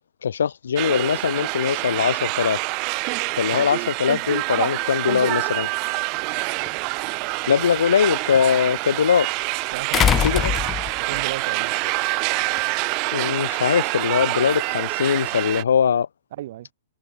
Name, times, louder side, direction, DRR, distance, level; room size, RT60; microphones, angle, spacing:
voice 1, 0.2-2.6 3.4-5.7 7.5-9.3 10.2-10.5 13.1-16.1, left 7 dB, 75° left, 5.2 m, -21 dB
sound 1, 0.8-15.6, right 33 dB, 40° right, 1.4 m, -26 dB
sound 2, 6.7-6.8 9.9-11.2 12.6-12.7, left 9 dB, 25° left, 2.6 m, -21 dB
voice 2, 9.7-10.7 11.0-11.7 16.3-16.7, right 14 dB, 60° right, 7.6 m, -34 dB
hypercardioid pair, 120°, 0 cm